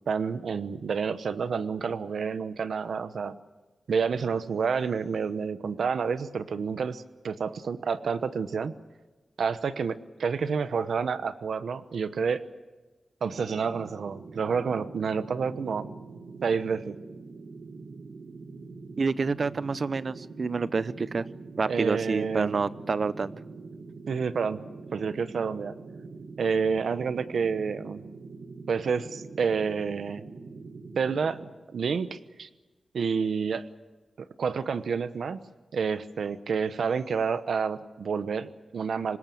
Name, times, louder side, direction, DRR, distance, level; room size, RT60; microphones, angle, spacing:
voice 1, 0.1-3.4 3.9-8.7 9.4-12.4 13.2-15.9 16.4-16.9 21.7-22.6 24.1-24.6 24.9-25.8 26.4-28.0 28.7-30.2 31.0-31.4 31.7-32.5 32.9-33.6 34.4-35.4 35.7-39.2, right 6 dB, 75° right, 13 dB, 1.0 m, -29 dB
sound 1, 13.3-31.5, right 4 dB, 60° right, 1.7 m, -44 dB
voice 2, 19.0-21.2 21.6-23.3, right 4 dB, 45° right, 17 dB, 0.7 m, -28 dB
25.5 x 21.0 x 7.8 m, 1.2 s
wide cardioid pair, 180°, 0 cm